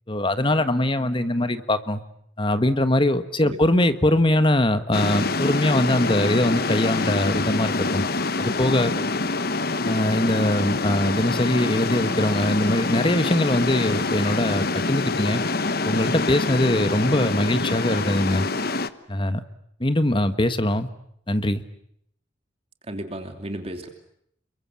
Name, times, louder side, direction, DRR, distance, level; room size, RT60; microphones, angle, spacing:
voice 1, 0.1-2.0 2.4-8.0 8.4-8.9 9.9-15.4 15.8-18.5 19.1-19.4 19.8-20.9 21.3-21.6, left 1 dB, 25° left, 11 dB, 1.5 m, -22 dB
sound 1, 4.9-18.9, left 3 dB, 50° left, 1.2 m, -25 dB
voice 2, 22.8-23.9, right 1 dB, 30° right, 6 dB, 2.9 m, -34 dB
29.0 x 23.0 x 8.5 m, 0.70 s
head